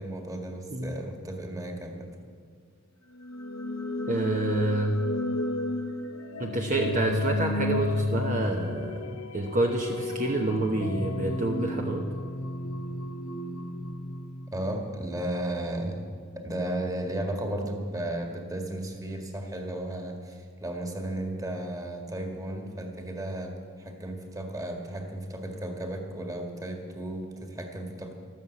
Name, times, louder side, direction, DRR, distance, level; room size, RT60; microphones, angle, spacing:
voice 1, 0.0-2.1 14.5-16.0 16.4-28.1, right 1 dB, 15° right, 3 dB, 1.9 m, -34 dB
sound 1, 3.2-15.1, left 2 dB, 75° left, 1.1 m, -33 dB
voice 2, 4.1-5.0 6.4-12.1, right 2 dB, 35° right, 2 dB, 1.0 m, -28 dB
13.5 x 13.0 x 8.3 m, 2.1 s
head